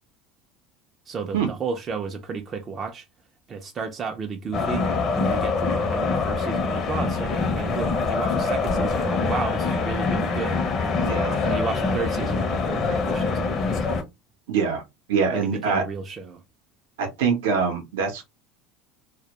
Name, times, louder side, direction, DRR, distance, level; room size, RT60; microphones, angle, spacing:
voice 1, 1.1-3.1 3.5-4.9 5.1-10.6 11.4-14.0 15.3-16.4, right 5 dB, 30° right, 0.3 m, -32 dB
sound 1, 4.5-14.0, left 4 dB, 40° left, 0.5 m, -24 dB
voice 2, 11.0-11.4 14.5-14.8 15.1-15.8 17.0-18.2, right 5 dB, 85° right, 0.6 m, -24 dB
2.1 x 2.1 x 2.8 m
supercardioid pair, 130°, 0 cm